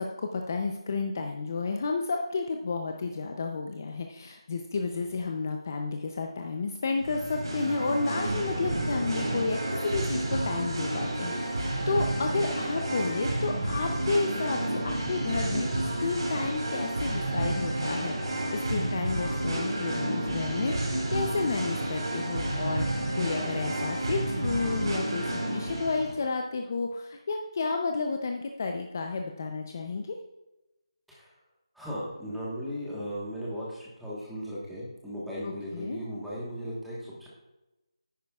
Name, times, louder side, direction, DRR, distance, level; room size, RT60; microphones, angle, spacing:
voice 1, 0.0-30.2 35.4-36.0, left 4 dB, 30° left, 3 dB, 0.6 m, -31 dB
Singing, 7.0-26.1, right 1 dB, 55° right, 2.9 m, -30 dB
voice 2, 31.7-37.3, equal, ahead, -8 dB, 1.3 m, -37 dB
10.0 x 9.2 x 2.4 m, 0.98 s
figure-of-eight pair, 175°, 3 cm